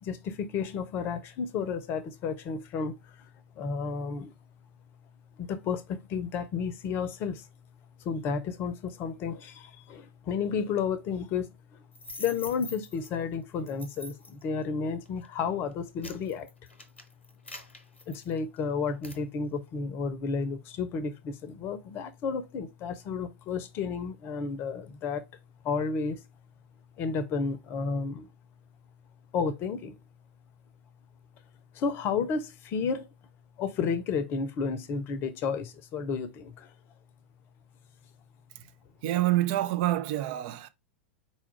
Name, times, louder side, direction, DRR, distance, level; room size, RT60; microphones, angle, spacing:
voice 1, 0.0-3.3 3.6-4.3 5.4-7.5 8.0-11.8 12.2-16.5 18.1-25.3 25.6-26.2 27.0-28.3 29.3-30.0 31.7-33.1 33.6-36.7, left 5 dB, 35° left, 0.6 m, -32 dB
sound 1, 11.9-13.1 13.7-14.4 15.1-15.3 15.7-18.6 19.0-19.2, left 2 dB, 85° left, 0.8 m, -44 dB
voice 2, 39.0-40.7, right 15 dB, 45° right, 0.4 m, -27 dB
4.2 x 2.4 x 4.3 m
figure-of-eight pair, 90°, 6 cm